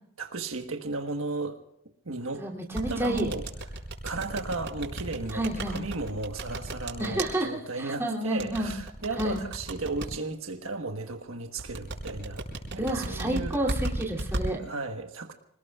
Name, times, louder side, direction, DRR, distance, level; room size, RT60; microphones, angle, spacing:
voice 1, 0.2-1.6 2.0-2.5 2.9-3.5 4.0-12.5 12.7-13.6 14.6-15.3, right 3 dB, 75° right, 5 dB, 1.4 m, -34 dB
voice 2, 2.4-3.3 5.3-5.8 7.0-8.7 9.2-9.4 12.8-14.6, right 1 dB, 10° right, -2 dB, 3.0 m, -30 dB
sound 1, 2.7-7.3 8.4-10.1 11.6-14.4, right 2 dB, 55° right, 5.4 m, -33 dB
27.0 x 20.0 x 2.4 m, 0.76 s
head